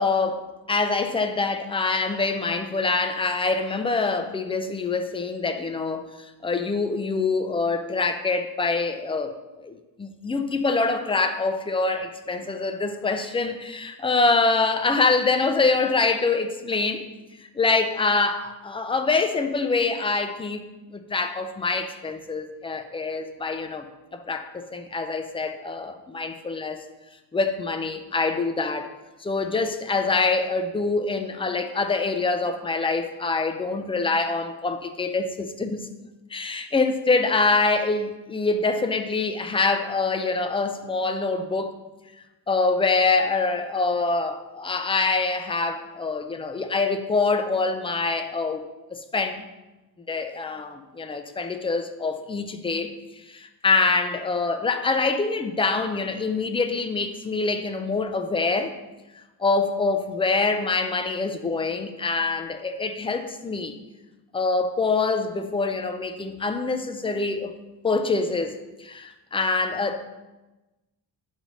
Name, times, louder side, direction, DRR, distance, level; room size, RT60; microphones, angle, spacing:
voice 1, 0.0-17.1 17.4-23.8 24.1-26.8 27.3-28.9 29.2-35.9 36.3-41.7 42.5-48.6 48.9-49.5 50.1-58.8 59.4-63.8 64.3-67.6 67.8-70.0, left 3 dB, 15° left, 7 dB, 0.4 m, -25 dB
8.0 x 3.4 x 6.2 m, 1.1 s
wide cardioid pair, 165°, 42 cm